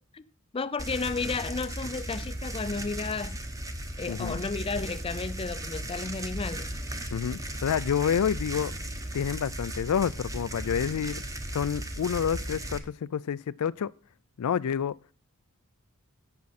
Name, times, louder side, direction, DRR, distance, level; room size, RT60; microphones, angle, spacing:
voice 1, 0.5-3.4 4.0-6.7, left 4 dB, 25° left, 0.4 m, -33 dB
sound 1, 0.8-12.8, right 1 dB, 15° right, 1.0 m, -36 dB
voice 2, 4.1-4.4 7.1-8.7 9.1-11.2 11.5-13.9 14.4-14.9, left 8 dB, 85° left, 0.4 m, -28 dB
11.5 x 8.3 x 4.2 m
head